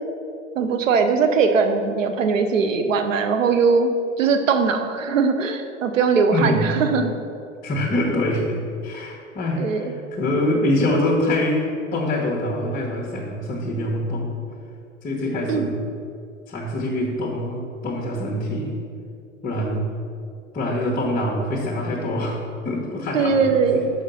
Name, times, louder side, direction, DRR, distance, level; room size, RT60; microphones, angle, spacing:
voice 1, 0.6-3.9 4.2-7.1 9.6-9.8 15.5-15.7 23.1-23.8, right 5 dB, 75° right, 6 dB, 0.8 m, -20 dB
voice 2, 6.3-6.8 7.6-14.4 15.0-15.8 16.5-18.8 19.4-19.9 20.5-22.4 22.6-23.9, left 1 dB, 20° left, -5 dB, 1.2 m, -24 dB
6.4 x 5.0 x 5.5 m, 2.4 s
figure-of-eight pair, 95°, 39 cm